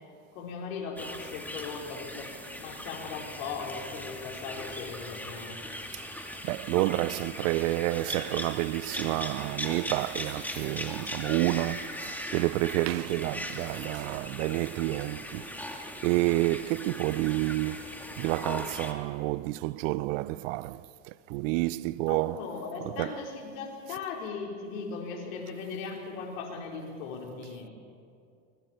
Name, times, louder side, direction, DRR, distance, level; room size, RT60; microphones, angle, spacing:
voice 1, 0.3-5.6 22.1-27.7, left 5 dB, 70° left, 4.6 m, -38 dB
sound 1, 1.0-18.9, left 1 dB, 5° left, 2.3 m, -39 dB
voice 2, 5.9-22.5 22.8-23.2, right 19 dB, 65° right, 0.6 m, -30 dB
25.0 x 22.5 x 4.5 m
hypercardioid pair, 100°, 41 cm